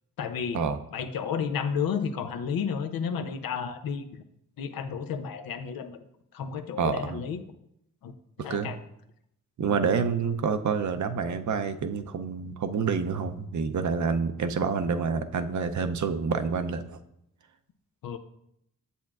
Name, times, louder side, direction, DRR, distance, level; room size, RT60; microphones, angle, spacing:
voice 1, 0.2-0.6 0.9-4.0 4.6-6.0 6.3-7.4 8.0-8.1 8.4-8.8 9.6-9.8 18.0-18.2, left 6 dB, 80° left, 8 dB, 0.6 m, -32 dB
voice 2, 6.8-7.2 8.5-8.8 9.6-17.0, right 5 dB, 55° right, 9 dB, 0.6 m, -28 dB
7.4 x 6.9 x 2.4 m, 0.77 s
supercardioid pair, 45°, 35 cm